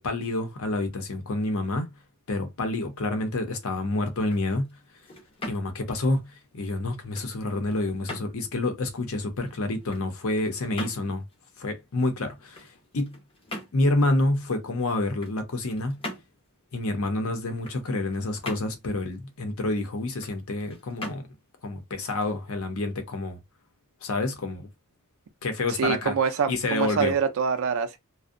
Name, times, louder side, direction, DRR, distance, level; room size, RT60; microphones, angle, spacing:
voice 1, 0.0-1.9 2.3-4.7 5.5-6.3 6.5-11.2 11.6-12.7 12.9-13.1 13.7-16.0 16.7-21.3 21.6-23.4 24.0-24.7 25.4-26.1 26.5-27.1, left 2 dB, 65° left, 0.7 m, -28 dB
sound 1, 4.1-22.9, left 1 dB, 25° left, 0.7 m, -44 dB
voice 2, 25.7-28.0, right 6 dB, 65° right, 0.4 m, -25 dB
2.6 x 2.0 x 2.4 m
head